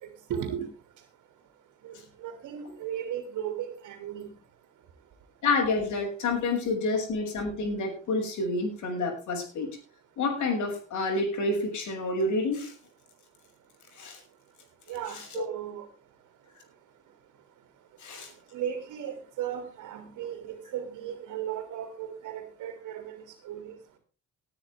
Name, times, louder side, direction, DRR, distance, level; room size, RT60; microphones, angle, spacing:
voice 1, 0.3-0.7 1.8-4.3 14.9-15.9 18.5-24.0, right 9 dB, 85° right, 5 dB, 3.1 m, -36 dB
voice 2, 5.4-9.7 10.2-12.7 14.0-14.2 15.3-15.4 18.0-18.3, left 3 dB, 75° left, 3 dB, 6.8 m, -28 dB
19.5 x 10.0 x 3.6 m, 0.33 s
cardioid pair, 90°, 30 cm